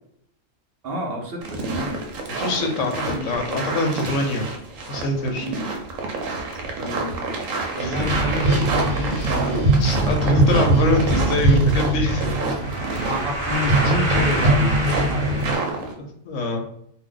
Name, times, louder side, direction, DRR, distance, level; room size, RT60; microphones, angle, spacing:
voice 1, 0.8-2.0 3.0-3.7 5.4-5.6 6.8-7.3 7.7-9.7 12.9-15.9, left 1 dB, 55° right, -1 dB, 0.8 m, -30 dB
sound 1, 1.4-15.9, right 3 dB, 80° right, 1.1 m, -29 dB
voice 2, 2.4-4.5 4.9-5.5 7.8-8.0 9.1-9.4 9.8-12.3 15.8-16.6, left 2 dB, 75° left, 3 dB, 1.0 m, -24 dB
sound 2, 7.9-15.5, right 2 dB, 40° right, 1.3 m, -21 dB
2.8 x 2.1 x 3.7 m, 0.69 s
omnidirectional pair, 1.3 m